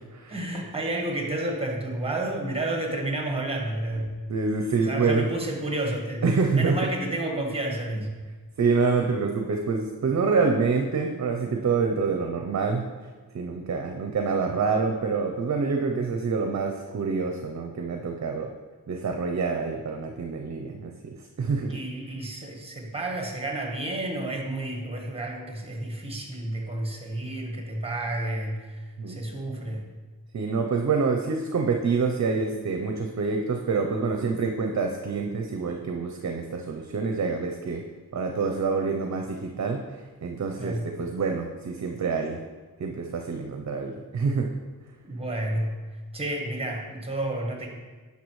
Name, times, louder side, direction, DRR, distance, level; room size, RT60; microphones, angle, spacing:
voice 1, 0.3-4.1 4.8-6.2 6.5-8.1 21.7-29.8 40.6-40.9 45.0-45.7 46.1-47.7, right 1 dB, 15° right, 1 dB, 1.3 m, -31 dB
voice 2, 4.3-5.3 6.2-6.7 8.6-12.8 13.3-18.5 18.9-21.8 29.0-29.2 30.3-37.8 38.1-39.8 40.2-42.4 42.8-44.5, right 4 dB, 45° right, 3 dB, 0.6 m, -26 dB
10.5 x 5.5 x 3.1 m, 1.4 s
wide cardioid pair, 100°, 37 cm